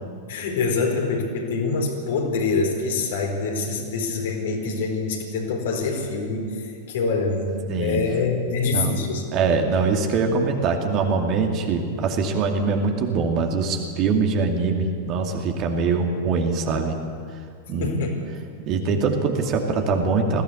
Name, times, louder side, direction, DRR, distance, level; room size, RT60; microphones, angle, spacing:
voice 1, 0.3-9.2 17.8-18.2, left 4 dB, 60° left, 1 dB, 4.1 m, -25 dB
voice 2, 7.7-8.0 8.7-9.0 9.3-17.2 17.7-17.9 18.7-20.4, right 4 dB, 35° right, 3 dB, 2.5 m, -23 dB
21.0 x 16.0 x 8.6 m, 2.3 s
figure-of-eight pair, 90°, 0 cm